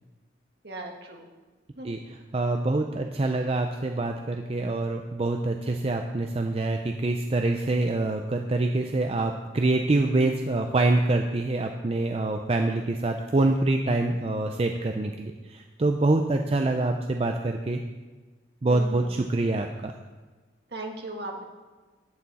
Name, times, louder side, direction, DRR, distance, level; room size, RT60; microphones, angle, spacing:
voice 1, 0.6-1.3 1.7-1.9 18.7-19.2 20.7-21.4, right 2 dB, 60° right, 1 dB, 1.6 m, -37 dB
voice 2, 1.8-17.8 18.6-19.9, right 2 dB, 30° right, 4 dB, 0.5 m, -25 dB
11.5 x 8.5 x 4.1 m, 1.3 s
head